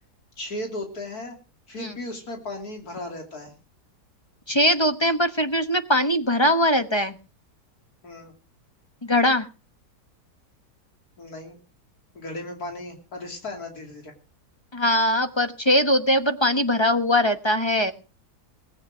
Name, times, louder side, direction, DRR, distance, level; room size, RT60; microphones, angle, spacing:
voice 1, 0.4-1.4 1.7-3.5 8.0-8.3 11.2-11.6 12.1-14.1, left 1 dB, 65° left, 3 dB, 3.3 m, -35 dB
voice 2, 4.5-7.1 9.0-9.5 14.7-17.9, left 1 dB, 20° left, 9 dB, 1.1 m, -21 dB
18.5 x 8.8 x 6.3 m, 0.36 s
omnidirectional pair, 1.7 m